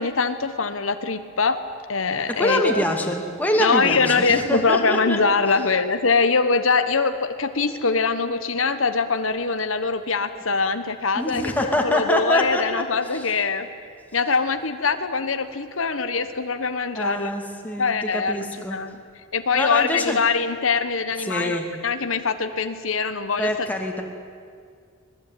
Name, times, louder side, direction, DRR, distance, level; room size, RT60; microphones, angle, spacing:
voice 1, 0.0-1.6 1.9-2.7 3.6-11.5 11.8-13.7 14.1-17.3 17.8-18.4 18.7-19.0 19.3-23.7, left 4 dB, 85° left, 9 dB, 1.3 m, -23 dB
voice 2, 2.4-5.2 11.1-12.6 13.1-13.3 16.9-18.9 19.5-20.2 21.2-21.7 23.4-24.0, left 1 dB, 10° left, 2 dB, 2.4 m, -25 dB
25.0 x 19.5 x 9.2 m, 2.2 s
head